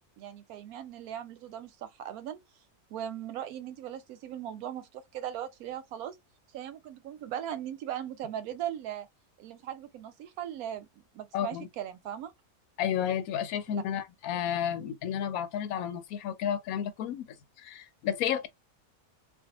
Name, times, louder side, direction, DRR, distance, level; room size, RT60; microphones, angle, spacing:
voice 1, 0.2-2.4 2.9-6.2 6.5-9.1 9.4-12.3 13.7-13.8, right 10 dB, 90° right, 1.1 m, -39 dB
voice 2, 11.3-11.7 12.8-17.3 17.6-18.5, left 9 dB, 80° left, 1.0 m, -31 dB
2.6 x 2.2 x 2.8 m
omnidirectional pair, 1.5 m